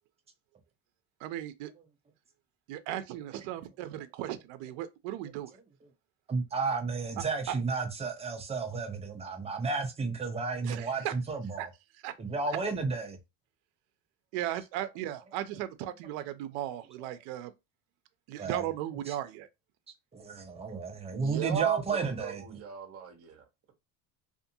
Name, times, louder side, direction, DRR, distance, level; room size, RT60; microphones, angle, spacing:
voice 1, 1.2-1.7 2.7-5.5 7.2-7.6 10.6-11.2 11.6-11.7 12.0-12.1 14.3-17.5 18.3-19.5, right 12 dB, 75° right, 0.5 m, -36 dB
voice 2, 6.3-11.7 12.2-13.2 18.4-18.6 19.1-19.2 20.1-22.4, right 4 dB, 15° right, 0.5 m, -32 dB
voice 3, 21.1-23.7, right 7 dB, 40° right, 1.0 m, -38 dB
2.5 x 2.5 x 2.6 m
cardioid pair, 135°, 37 cm